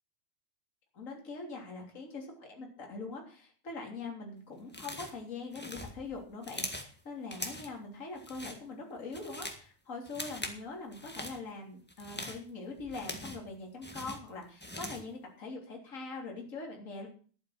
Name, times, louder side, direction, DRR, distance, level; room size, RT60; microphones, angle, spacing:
voice 1, 0.9-17.1, left 3 dB, 25° left, 0 dB, 3.3 m, -43 dB
sound 1, 4.7-5.2 5.5-6.9 7.3-7.8 8.1-8.6 9.0-9.6 10.0-10.6 10.9-11.4 11.9-13.5 13.8-15.1, left 1 dB, 10° left, 0.6 m, -42 dB
11.5 x 9.1 x 6.5 m, 0.41 s
omnidirectional pair, 3.6 m